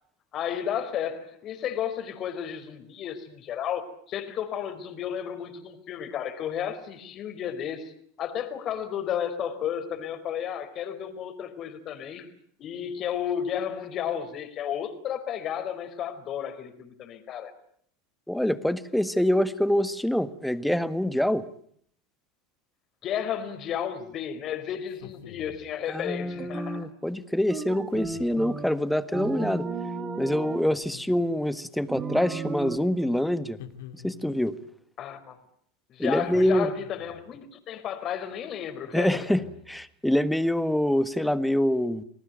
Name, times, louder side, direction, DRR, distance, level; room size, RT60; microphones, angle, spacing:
voice 1, 0.3-7.9 8.2-12.3 12.6-17.5 23.0-26.9 35.0-35.4 35.9-39.3, left 9 dB, 40° left, 9 dB, 4.6 m, -33 dB
voice 2, 18.3-21.4 25.9-29.7 30.2-33.6 33.9-34.6 36.0-36.7 38.9-42.0, left 1 dB, 5° left, 13 dB, 1.5 m, -25 dB
sound 1, 24.9-25.7 27.9-28.5 30.7-31.5 33.6-34.5 36.3-37.3 39.1-39.9, left 10 dB, 75° left, 2.7 m, -47 dB
sound 2, 26.4-26.9 27.5-28.8 29.1-30.7 31.9-32.8, right 5 dB, 25° right, 2.4 m, -34 dB
28.5 x 19.0 x 9.1 m, 0.65 s
supercardioid pair, 110°, 0 cm